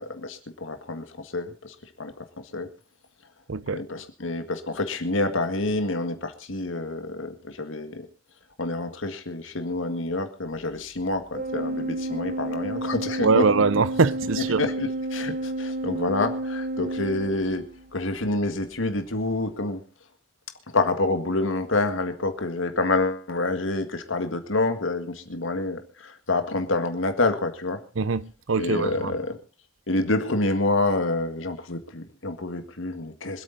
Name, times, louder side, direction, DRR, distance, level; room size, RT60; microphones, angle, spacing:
voice 1, 0.0-2.2 2.5-2.7 3.7-8.1 8.6-13.5 14.4-17.7 17.9-19.8 20.7-27.8 28.6-29.4 29.9-33.4, left 2 dB, 85° left, 1.9 m, -27 dB
voice 2, 3.5-3.8 13.2-14.7 28.0-29.1, right 4 dB, 90° right, 0.7 m, -23 dB
Organ, 11.3-17.9, right 1 dB, 45° right, 0.8 m, -31 dB
25.0 x 8.7 x 4.0 m
head